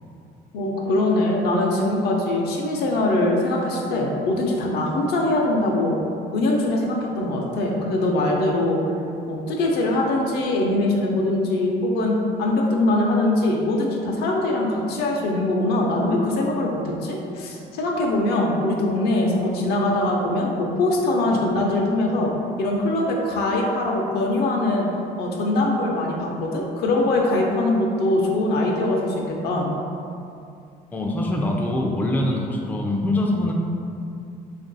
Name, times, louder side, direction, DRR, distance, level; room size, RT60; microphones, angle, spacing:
voice 1, 0.5-6.0 6.3-8.8 9.3-22.3 22.6-24.9 25.2-29.7, left 2 dB, 75° left, -1 dB, 0.6 m, -22 dB
voice 2, 30.9-33.5, left 1 dB, 10° left, -1 dB, 0.4 m, -23 dB
3.0 x 2.5 x 3.9 m, 2.5 s
cardioid pair, 110°, 17 cm